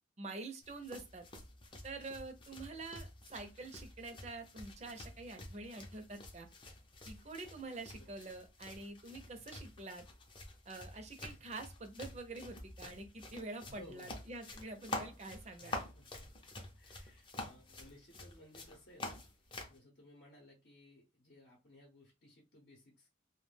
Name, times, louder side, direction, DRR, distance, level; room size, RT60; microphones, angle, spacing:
voice 1, 0.2-1.2 1.8-6.5 7.1-10.0 10.7-15.8, right 3 dB, 35° right, 6 dB, 0.5 m, -47 dB
sound 1, 0.6-19.8, left 2 dB, 25° left, 0.5 m, -48 dB
voice 2, 13.7-14.2 15.6-16.3 16.7-23.1, left 1 dB, 60° left, -1 dB, 0.7 m, -59 dB
2.3 x 2.2 x 3.3 m, 0.25 s
head